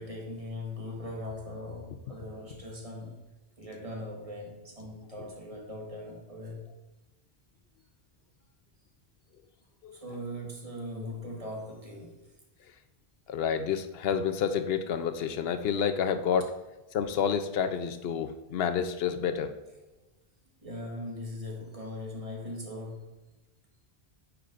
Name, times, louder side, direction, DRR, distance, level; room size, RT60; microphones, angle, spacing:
voice 1, 0.0-3.2 3.6-6.7 9.9-12.4 20.6-23.2, left 1 dB, 35° right, -1 dB, 1.2 m, -40 dB
voice 2, 13.3-16.5 16.9-19.5, left 7 dB, 75° left, 8 dB, 0.8 m, -29 dB
9.1 x 4.6 x 2.5 m, 1.0 s
omnidirectional pair, 1.0 m